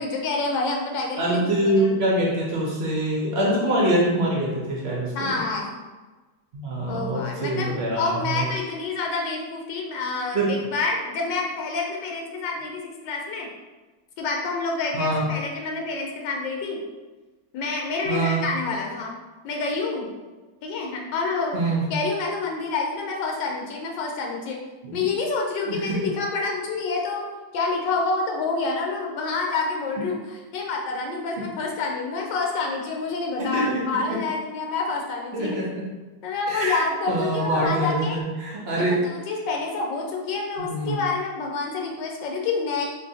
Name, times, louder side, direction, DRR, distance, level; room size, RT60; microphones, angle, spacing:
voice 1, 0.0-2.0 5.1-5.7 6.9-13.5 14.2-16.8 17.5-19.1 19.4-20.1 20.6-21.6 21.9-24.6 24.9-27.2 27.5-35.6 36.2-38.2 38.7-42.9, left 3 dB, 90° left, 0 dB, 1.3 m, -28 dB
voice 2, 1.2-5.3 6.5-8.4 10.3-10.7 14.9-15.2 18.1-18.4 21.5-21.8 24.8-25.0 25.7-26.0 31.4-31.5 33.4-34.2 35.3-35.7 36.5-39.0 40.6-41.0, right 1 dB, 65° right, -4 dB, 0.6 m, -25 dB
4.0 x 2.6 x 2.7 m, 1.2 s
omnidirectional pair, 1.9 m